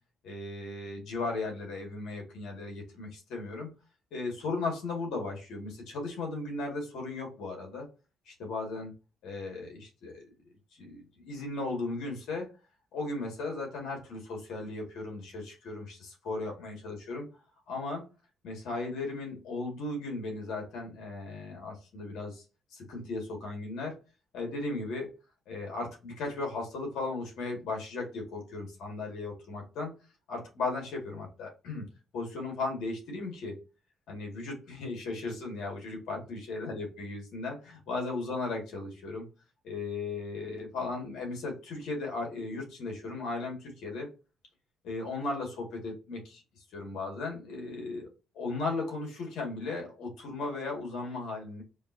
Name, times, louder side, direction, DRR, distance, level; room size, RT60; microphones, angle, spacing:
voice 1, 0.2-3.7 4.1-7.9 8.3-8.9 9.2-10.2 10.7-12.5 12.9-17.2 17.7-18.1 18.4-22.4 22.7-24.0 24.3-25.1 25.5-29.9 30.3-31.8 32.1-33.6 34.1-39.3 39.6-44.1 44.8-48.1 48.3-51.6, left 3 dB, 80° left, 1 dB, 1.8 m, -36 dB
5.1 x 2.6 x 2.6 m, 0.31 s
cardioid pair, 90°, 0 cm